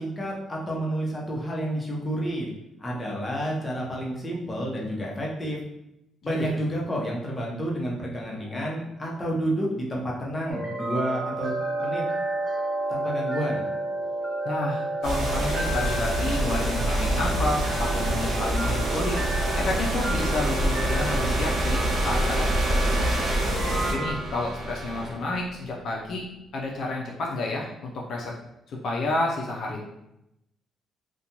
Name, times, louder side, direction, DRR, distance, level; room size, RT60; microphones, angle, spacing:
voice 1, 0.0-2.5 2.8-5.6 6.2-11.5 11.8-12.0 12.9-13.7, right 1 dB, 20° left, -3 dB, 0.8 m, -30 dB
sound 1, 10.5-24.1, right 2 dB, 10° right, 1.1 m, -32 dB
voice 2, 14.4-19.2 19.5-23.2 23.9-26.2 26.5-28.3 28.7-29.8, left 2 dB, 65° left, -1 dB, 0.4 m, -30 dB
sound 2, 15.0-23.9, right 1 dB, 85° right, 0.9 m, -26 dB
sound 3, 16.6-26.3, right 1 dB, 30° right, 0.6 m, -33 dB
2.5 x 2.2 x 2.9 m, 0.84 s
cardioid pair, 90°, 0 cm